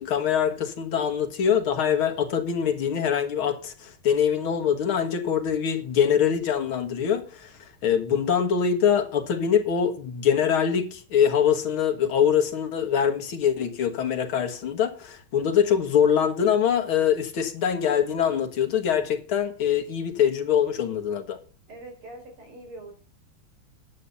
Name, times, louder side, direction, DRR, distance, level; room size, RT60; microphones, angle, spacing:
voice 1, 0.0-21.4, left 8 dB, 75° left, 2.4 m, -24 dB
voice 2, 21.7-22.9, right 2 dB, 85° right, 5.6 m, -43 dB
10.0 x 8.4 x 5.5 m
omnidirectional pair, 2.3 m